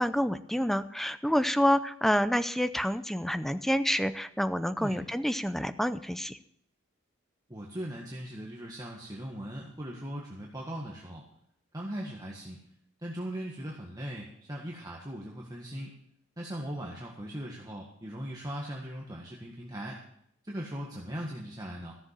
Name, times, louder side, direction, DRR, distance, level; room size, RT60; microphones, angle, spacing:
voice 1, 0.0-6.4, equal, ahead, 12 dB, 0.6 m, -28 dB
voice 2, 7.5-11.2 11.7-12.6 13.0-15.9 16.4-20.0 20.4-22.0, equal, 20° right, -2 dB, 1.7 m, -39 dB
14.5 x 7.4 x 7.5 m, 0.71 s
head